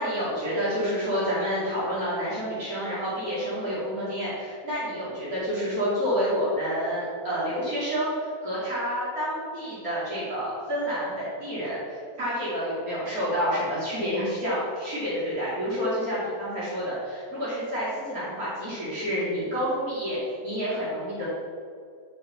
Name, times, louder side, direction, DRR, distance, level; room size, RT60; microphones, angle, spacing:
voice 1, 0.0-20.2 20.4-21.3, equal, 80° right, -10 dB, 3.3 m, -29 dB
10.5 x 4.8 x 5.7 m, 2.3 s
omnidirectional pair, 1.5 m